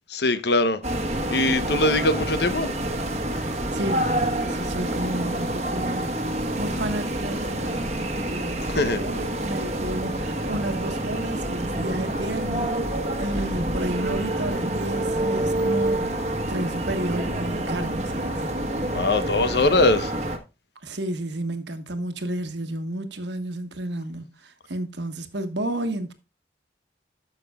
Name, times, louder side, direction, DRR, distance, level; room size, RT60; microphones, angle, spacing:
voice 1, 0.1-0.8 1.3-2.7 8.6-9.0 18.9-20.1, left 2 dB, 60° left, 0.8 m, -21 dB
sound 1, 0.8-20.4, right 1 dB, 35° right, 1.2 m, -27 dB
voice 2, 3.7-6.2 6.6-18.4 20.8-26.1, right 1 dB, 70° right, 1.3 m, -31 dB
12.5 x 6.1 x 2.3 m
head